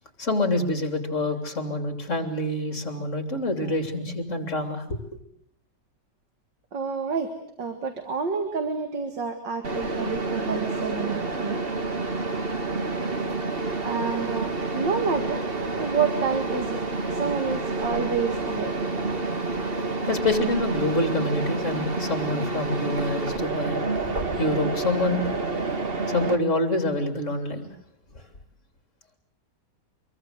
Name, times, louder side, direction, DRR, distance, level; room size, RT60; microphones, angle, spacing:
voice 1, 0.2-5.0 20.1-23.8 24.4-25.2 26.1-27.7 28.1-28.2, left 2 dB, 45° left, 7 dB, 3.6 m, -26 dB
voice 2, 6.7-7.3 7.6-11.6 13.8-14.5 14.7-15.4 15.7-16.8 17.1-18.7, right 5 dB, 80° right, 6 dB, 2.7 m, -28 dB
Mechanisms, 9.6-26.3, right 3 dB, 35° right, 2.0 m, -29 dB
25.5 x 22.5 x 8.1 m, 0.69 s
omnidirectional pair, 1.9 m